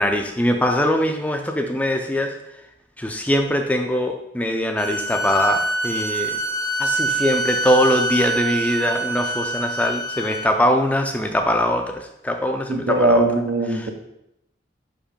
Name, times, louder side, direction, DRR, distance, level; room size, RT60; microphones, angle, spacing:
voice 1, 0.0-2.4 3.0-6.4 6.8-13.2 13.7-13.9, equal, 10° left, 5 dB, 0.4 m, -22 dB
sound 1, 4.8-10.5, right 2 dB, 55° left, 0.8 m, -25 dB
voice 2, 12.7-13.9, right 1 dB, 65° right, 6 dB, 0.8 m, -20 dB
5.6 x 5.1 x 5.1 m, 0.83 s
head